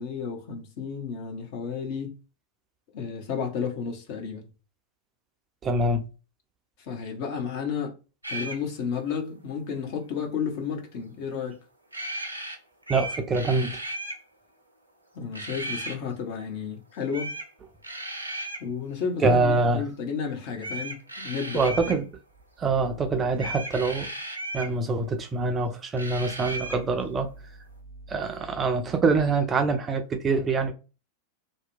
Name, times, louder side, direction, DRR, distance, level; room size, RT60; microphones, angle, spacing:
voice 1, 0.0-2.1 2.9-4.5 6.8-7.9 8.3-11.6 15.1-17.3 18.6-22.0, left 6 dB, 45° left, 0.8 m, -32 dB
voice 2, 5.6-6.1 12.9-13.7 19.2-19.9 21.5-22.1 22.6-24.1 24.5-27.3 28.1-30.7, right 3 dB, 20° right, 0.4 m, -24 dB
sound 1, 8.2-8.6 11.9-12.6 12.8-14.2 15.3-16.0 17.1-17.5 17.8-18.6 20.6-22.0 23.4-24.7 26.0-26.8, right 1 dB, 85° right, 0.5 m, -35 dB
2.7 x 2.1 x 2.5 m
figure-of-eight pair, 90°, 0 cm